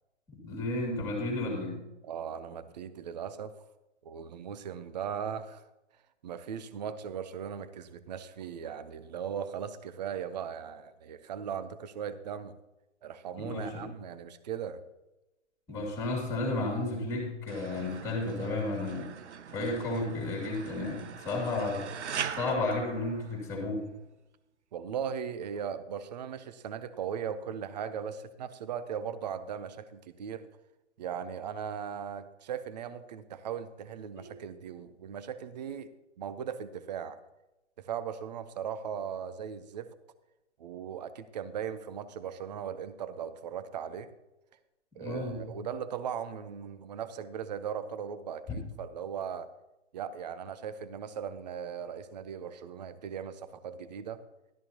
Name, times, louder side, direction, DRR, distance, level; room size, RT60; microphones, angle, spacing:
voice 1, 0.3-1.8 13.4-13.9 15.7-19.1 19.5-21.8 22.3-23.8 34.2-34.3 45.0-45.5 48.5-48.6, left 2 dB, 10° left, -1 dB, 2.5 m, -33 dB
voice 2, 2.0-3.5 4.0-5.7 6.2-12.5 13.0-14.8 24.7-30.5 31.0-35.9 36.2-37.2 37.8-39.9 40.6-44.1 44.9-49.5 49.9-54.2, right 8 dB, 35° right, 13 dB, 0.6 m, -38 dB
sound 1, 17.5-23.8, right 7 dB, 70° right, 0.8 m, -41 dB
12.5 x 12.5 x 2.9 m, 0.97 s
hypercardioid pair, 140°, 36 cm